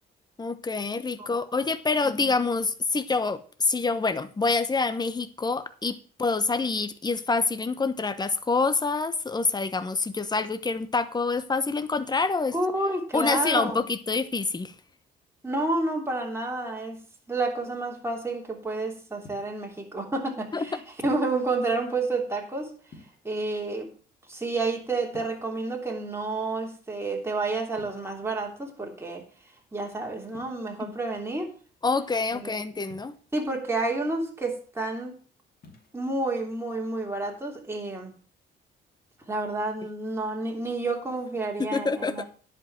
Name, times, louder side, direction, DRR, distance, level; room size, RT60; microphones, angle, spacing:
voice 1, 0.4-12.5 13.1-14.7 20.5-20.7 30.8-30.9 31.8-33.1 41.6-42.2, left 4 dB, 20° left, 12 dB, 1.0 m, -26 dB
voice 2, 2.0-2.4 12.5-13.8 15.4-17.0 17.3-22.7 23.2-23.9 24.3-29.2 29.7-31.5 32.3-32.6 33.3-35.1 35.9-38.1 39.3-42.2, right 2 dB, 10° right, 0 dB, 3.2 m, -30 dB
sound 1, 19.2-19.7 21.0-21.4 22.9-23.5 25.1-25.8 27.7-28.3 30.3-30.6 32.9-33.4 35.5-36.0, left 3 dB, 50° left, 2.7 m, -50 dB
10.5 x 5.4 x 7.4 m, 0.41 s
cardioid pair, 90°, 20 cm